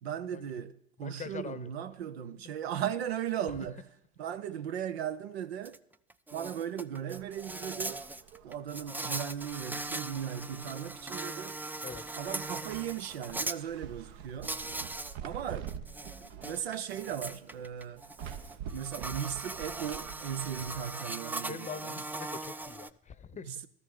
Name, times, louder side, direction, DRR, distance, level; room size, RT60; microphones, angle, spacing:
voice 1, 0.0-3.8 4.2-5.8 6.3-8.0 8.4-11.6 12.1-14.6 15.2-15.7 16.3-18.0 18.7-21.9 23.5-23.7, right 9 dB, 80° right, 0.7 m, -37 dB
voice 2, 1.0-1.7 3.5-3.7 11.8-12.0 21.5-23.6, left 6 dB, 25° left, 0.7 m, -43 dB
Insect, 5.6-5.8 6.1-13.6 14.4-15.2 15.5-22.9, right 2 dB, 5° right, 0.4 m, -40 dB
sound 1, 7.1-20.8, right 8 dB, 60° right, 1.0 m, -47 dB
14.0 x 13.5 x 3.9 m
hypercardioid pair, 75°, 30 cm